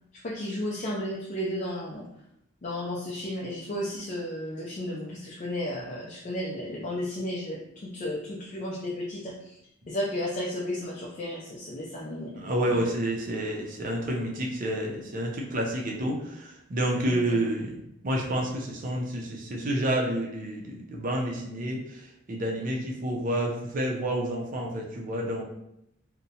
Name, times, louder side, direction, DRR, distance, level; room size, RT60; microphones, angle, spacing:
voice 1, 0.2-2.0 2.6-9.3 9.9-12.4 17.1-17.4, left 1 dB, 40° left, -4 dB, 0.4 m, -33 dB
voice 2, 12.4-25.4, right 1 dB, 45° right, -1 dB, 0.5 m, -29 dB
2.7 x 2.1 x 2.7 m, 0.79 s
head